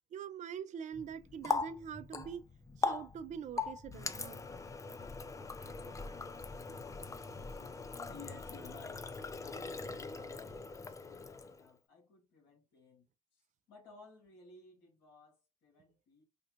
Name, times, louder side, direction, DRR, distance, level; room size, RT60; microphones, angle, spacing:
voice 1, 0.1-2.4 2.8-4.4 5.6-5.8 6.0-6.2, right 8 dB, 40° right, 0.5 m, -44 dB
Water tap faucet, 0.9-11.7, left 4 dB, 15° left, 0.4 m, -41 dB
voice 2, 8.0-13.1 13.3-16.2, left 4 dB, 70° left, 1.7 m, -56 dB
3.4 x 2.4 x 2.9 m
hypercardioid pair, 70°, 18 cm